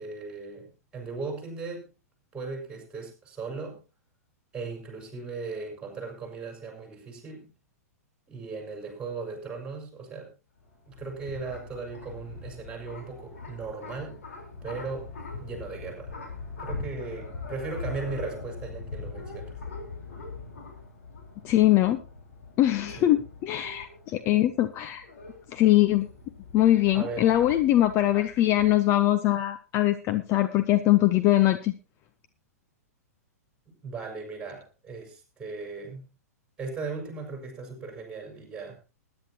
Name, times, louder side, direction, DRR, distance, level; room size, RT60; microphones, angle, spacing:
voice 1, 0.0-1.9 2.3-3.8 4.5-7.5 8.3-10.3 10.9-14.2 14.6-15.1 15.4-16.1 16.6-19.5 23.0-23.2 26.9-27.3 33.8-36.1 36.6-38.8, right 4 dB, 10° right, 2 dB, 5.5 m, -37 dB
sound 1, 10.6-28.7, left 4 dB, 60° left, 4.0 m, -42 dB
voice 2, 21.4-22.0 22.6-25.0 25.5-26.1 26.5-31.7, left 14 dB, 30° left, 9 dB, 0.8 m, -22 dB
20.5 x 10.5 x 2.8 m, 0.31 s
figure-of-eight pair, 105°, 8 cm